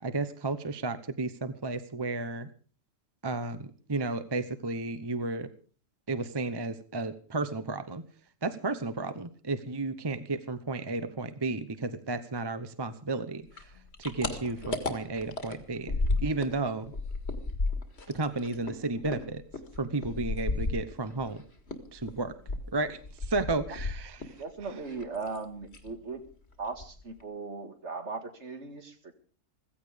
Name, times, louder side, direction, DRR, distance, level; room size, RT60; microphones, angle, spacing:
voice 1, 0.0-2.5 3.2-5.5 6.1-8.0 8.4-13.7 14.0-16.9 18.1-19.4 19.8-21.4 21.9-22.4 22.7-24.3, right 3 dB, 20° right, 12 dB, 0.8 m, -33 dB
sound 1, 13.5-16.6 16.8-21.3 21.7-24.4 24.7-25.4 25.7-25.9 26.3-26.4 26.6-27.2, left 3 dB, 50° left, 2.3 m, -33 dB
voice 2, 24.4-26.2 26.6-29.2, right 4 dB, 55° right, 7 dB, 2.4 m, -38 dB
15.5 x 15.5 x 5.1 m, 0.41 s
omnidirectional pair, 1.4 m